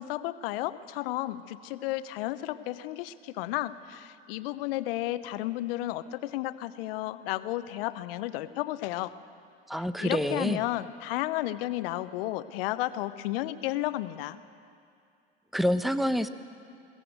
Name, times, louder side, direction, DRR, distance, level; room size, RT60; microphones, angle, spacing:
voice 1, 0.0-9.1 10.0-14.4, left 16 dB, 65° left, 14 dB, 0.9 m, -33 dB
voice 2, 9.7-10.6 15.5-16.3, equal, ahead, 12 dB, 0.9 m, -27 dB
22.0 x 17.5 x 8.0 m, 2.4 s
hypercardioid pair, 70°, 31 cm